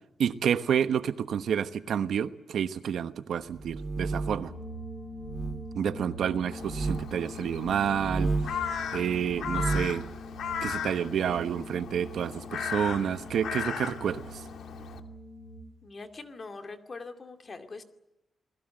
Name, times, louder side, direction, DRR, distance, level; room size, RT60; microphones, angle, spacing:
voice 1, 0.2-4.5 5.7-8.3 8.9-10.0 10.6-14.2, right 8 dB, 65° right, 1.1 m, -29 dB
sound 1, 3.5-4.5 5.2-5.6 6.6-7.0 7.9-8.6 9.3-10.0, right 3 dB, 15° right, 2.2 m, -31 dB
sound 2, 4.5-15.6, right 1 dB, ahead, 7.7 m, -43 dB
Crow, 6.5-15.0, left 7 dB, 70° left, 2.3 m, -37 dB
voice 2, 15.8-17.8, left 3 dB, 30° left, 2.4 m, -42 dB
28.0 x 21.0 x 7.8 m
wide cardioid pair, 180°, 0 cm